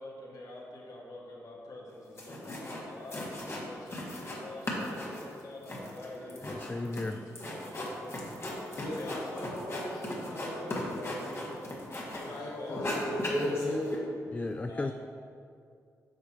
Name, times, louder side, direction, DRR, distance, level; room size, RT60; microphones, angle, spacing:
voice 1, 0.0-7.7 9.0-9.2 12.3-12.8 14.7-14.9, left 2 dB, 65° left, -3 dB, 1.6 m, -46 dB
sound 1, 1.9-2.0 2.2-2.8 3.1-4.4 4.6-12.4 12.7-13.9, left 1 dB, 40° left, 1.8 m, -36 dB
voice 2, 6.4-7.2 14.3-14.9, left 2 dB, 20° left, 7 dB, 0.3 m, -34 dB
voice 3, 8.7-11.8 12.2-13.9, left 1 dB, 85° left, -4 dB, 1.2 m, -40 dB
9.2 x 5.9 x 2.9 m, 2.3 s
supercardioid pair, 50°, 7 cm